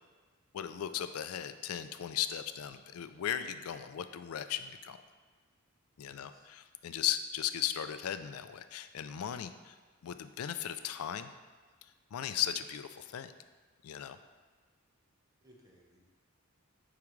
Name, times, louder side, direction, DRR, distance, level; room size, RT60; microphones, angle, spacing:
voice 1, 0.5-5.0 6.0-9.7 10.0-11.3 12.1-13.3 13.8-14.2, left 10 dB, 90° left, 10 dB, 0.4 m, -37 dB
voice 2, 6.0-6.5 15.4-16.1, equal, 15° right, -2 dB, 1.0 m, -63 dB
8.5 x 4.8 x 3.2 m, 1.4 s
head